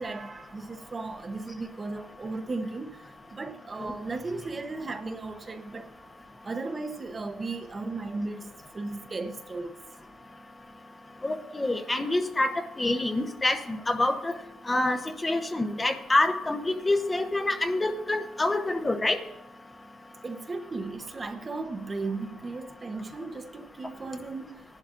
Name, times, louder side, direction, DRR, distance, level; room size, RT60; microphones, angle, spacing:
voice 1, 0.0-5.9 6.4-9.8 20.2-24.6, right 3 dB, 30° right, 0.9 m, -36 dB
voice 2, 11.2-14.3 14.7-19.2, left 2 dB, 20° left, 0.9 m, -27 dB
20.0 x 11.5 x 2.6 m
cardioid pair, 90°, 0 cm